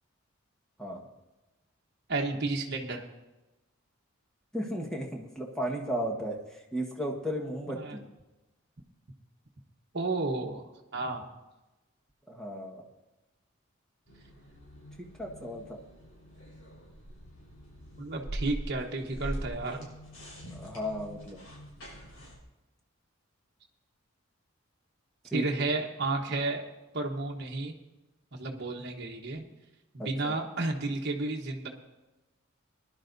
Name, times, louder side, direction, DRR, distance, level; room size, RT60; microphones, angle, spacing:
voice 1, 2.1-3.0 7.7-8.0 9.9-10.6 10.9-11.3 18.0-19.9 25.3-26.6 26.9-27.7 28.3-29.4 29.9-31.7, right 2 dB, 50° right, 1 dB, 1.2 m, -32 dB
voice 2, 4.5-8.0 12.3-12.8 15.2-15.8 20.5-21.4 25.3-25.5 30.0-30.4, equal, 5° left, 0 dB, 1.4 m, -35 dB
sound 1, 14.1-22.4, right 1 dB, 90° left, 5.4 m, -43 dB
21.0 x 11.5 x 2.7 m, 1.0 s
head